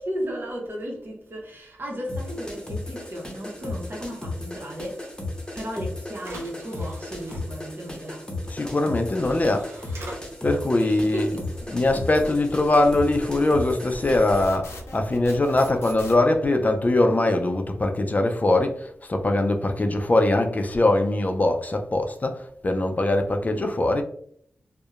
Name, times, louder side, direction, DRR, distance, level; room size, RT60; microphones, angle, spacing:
voice 1, 0.0-8.3 10.8-12.4, equal, 55° right, 0.9 m, -35 dB
sound 1, 2.1-14.5, left 2 dB, 20° left, 0.8 m, -35 dB
sound 2, 5.6-5.7 6.1-7.4 8.8-8.9 9.2-10.2, right 1 dB, 85° right, 0.5 m, -41 dB
voice 2, 8.5-9.7 10.4-11.4 11.7-24.0, left 2 dB, 35° left, 0.4 m, -22 dB
sound 3, 11.1-16.1, equal, 85° left, 0.6 m, -40 dB
2.7 x 2.1 x 2.3 m
cardioid pair, 45°, 4 cm